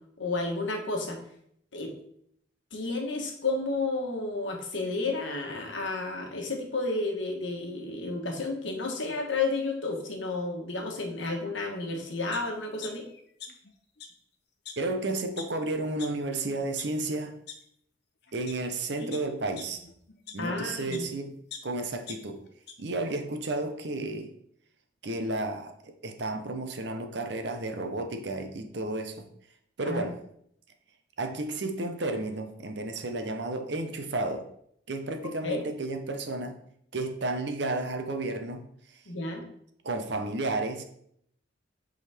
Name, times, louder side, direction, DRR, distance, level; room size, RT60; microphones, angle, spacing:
voice 1, 0.2-1.2 1.7-1.9 2.7-13.0 19.0-19.1 20.4-21.0 29.8-30.0 35.4-35.6 39.1-39.4, left 3 dB, 75° left, 2 dB, 1.3 m, -31 dB
sound 1, 12.3-12.4 12.8-13.7 14.0-14.1 14.6-14.7 15.4-15.5 16.0-16.1 16.6-16.8 17.5-17.6 18.2-18.5 19.1-21.1 21.5-22.7 23.1-23.2, left 7 dB, 55° left, 0.8 m, -43 dB
voice 2, 14.8-17.4 18.3-19.8 20.3-21.3 21.6-22.4 22.8-24.3 25.0-29.3 29.8-30.2 31.2-34.4 34.9-36.6 36.9-38.6 39.8-40.8, right 2 dB, 60° right, 6 dB, 0.8 m, -32 dB
8.1 x 3.9 x 3.5 m, 0.69 s
head